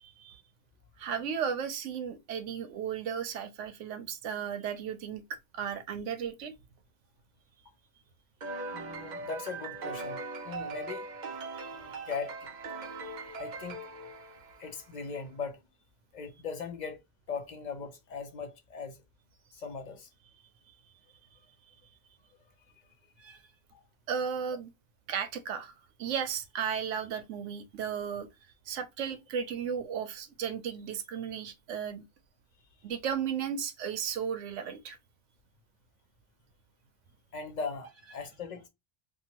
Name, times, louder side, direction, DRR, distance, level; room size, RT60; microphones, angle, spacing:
voice 1, 0.0-0.4 1.0-6.5 11.5-11.7 23.2-23.4 24.1-24.7 25.1-25.7 26.0-28.3 28.7-32.0 32.8-35.0, right 7 dB, 80° right, 0.9 m, -35 dB
sound 1, 8.4-15.0, right 3 dB, 50° right, 0.6 m, -40 dB
voice 2, 8.7-10.2 10.4-11.1 11.7-12.8 13.4-13.9 14.6-15.7 16.1-17.0 17.3-19.0 19.5-20.1 23.7-23.8 37.3-38.7, left 5 dB, 45° left, 0.6 m, -39 dB
2.7 x 2.4 x 2.8 m
omnidirectional pair, 1.3 m